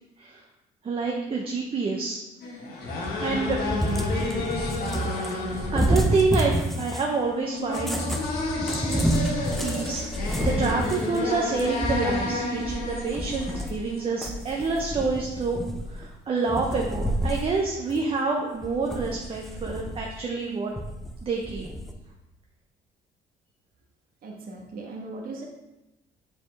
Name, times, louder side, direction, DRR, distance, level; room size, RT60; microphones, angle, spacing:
voice 1, 0.8-2.2 3.2-3.6 4.6-4.8 5.7-8.1 9.6-10.0 10.4-15.6 15.9-20.7 21.2-21.7, right 4 dB, 35° right, 0 dB, 0.8 m, -27 dB
sound 1, 2.4-14.3, left 2 dB, 70° left, 1.5 m, -31 dB
Cat, 2.9-7.1 7.7-13.9 14.2-16.1 16.5-17.5 17.9-18.0 18.6-20.1 20.8-21.9, right 1 dB, ahead, 0.6 m, -29 dB
voice 2, 24.2-25.5, right 3 dB, 60° right, -1 dB, 1.2 m, -38 dB
6.6 x 5.1 x 3.4 m, 0.97 s
cardioid pair, 110°, 17 cm